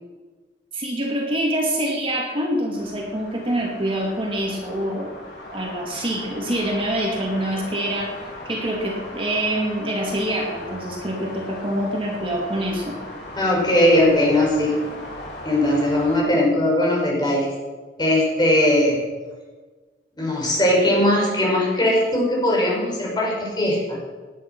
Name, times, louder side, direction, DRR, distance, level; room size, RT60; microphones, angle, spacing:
voice 1, 0.7-5.2 5.5-8.1 8.5-13.0, right 1 dB, 30° right, -1 dB, 2.4 m, -25 dB
sound 1, 2.7-16.2, left 1 dB, 75° left, 4.5 m, -38 dB
voice 2, 13.4-14.7 15.4-17.5 18.0-19.0 20.2-24.0, left 1 dB, 25° left, -2 dB, 5.6 m, -19 dB
18.0 x 10.0 x 6.1 m, 1.3 s
head